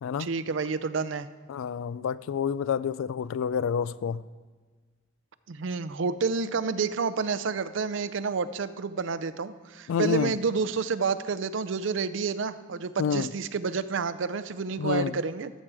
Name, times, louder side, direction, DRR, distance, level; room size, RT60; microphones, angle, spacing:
voice 1, 0.2-1.3 5.5-15.5, right 5 dB, 70° right, 0.5 m, -29 dB
voice 2, 1.5-4.2 9.9-10.4 13.0-13.3 14.8-15.2, left 7 dB, 85° left, 0.3 m, -28 dB
13.5 x 7.6 x 4.8 m
head